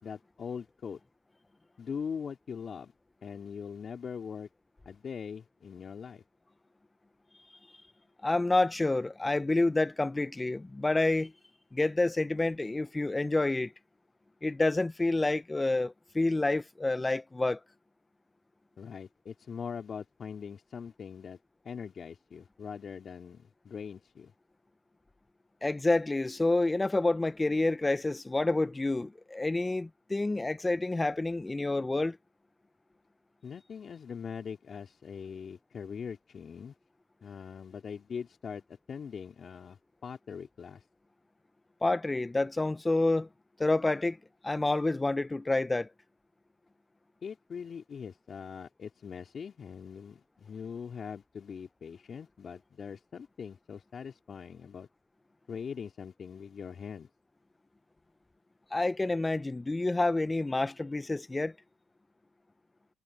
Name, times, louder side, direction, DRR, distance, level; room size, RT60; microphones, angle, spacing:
voice 1, 0.0-1.0 1.8-2.9 3.2-4.5 4.8-6.2 18.8-21.4 21.6-24.3 33.4-36.7 37.2-38.6 38.9-40.8 47.2-54.9 55.5-57.1, left 6 dB, 45° left, 3.4 m, -42 dB
voice 2, 8.2-11.3 11.7-13.7 14.4-17.6 25.6-32.2 41.8-43.3 43.6-44.2 44.4-45.9 58.7-61.5, left 2 dB, 15° left, 1.3 m, -28 dB
supercardioid pair, 65°, 0 cm